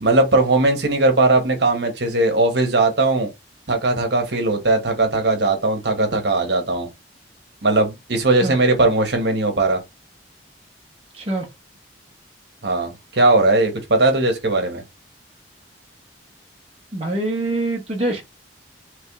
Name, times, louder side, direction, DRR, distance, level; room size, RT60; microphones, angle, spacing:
voice 1, 0.0-3.3 3.7-6.9 7.6-9.8 12.6-14.8, right 2 dB, 65° right, 1.1 m, -19 dB
voice 2, 11.1-11.5 16.9-18.2, right 2 dB, 30° right, 0.8 m, -24 dB
3.3 x 3.2 x 3.5 m
head